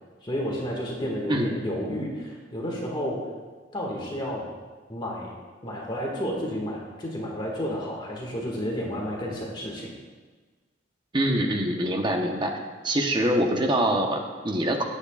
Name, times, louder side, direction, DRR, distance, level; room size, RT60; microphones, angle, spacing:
voice 1, 0.2-3.2 3.7-4.4 4.9-5.3 5.6-9.9, equal, 25° left, -2 dB, 1.9 m, -31 dB
voice 2, 11.1-12.6 12.8-14.8, right 1 dB, 25° right, 3 dB, 1.0 m, -24 dB
17.0 x 8.3 x 2.4 m, 1.4 s
head